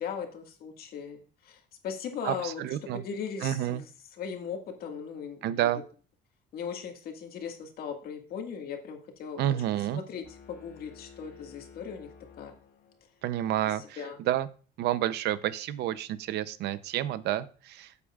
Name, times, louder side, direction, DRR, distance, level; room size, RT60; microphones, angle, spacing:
voice 1, 0.0-2.6 2.9-5.7 6.5-12.1 12.4-12.5 13.6-14.2, left 7 dB, 60° left, 4 dB, 2.0 m, -39 dB
voice 2, 2.2-3.0 3.4-3.8 5.4-5.8 9.4-10.0 13.2-13.8 14.3-14.5 14.8-17.9, right 12 dB, 75° right, 14 dB, 0.7 m, -29 dB
sound 1, 10.2-13.2, left 6 dB, 85° left, 1.9 m, -53 dB
12.5 x 8.2 x 2.4 m, 0.39 s
cardioid pair, 140°, 17 cm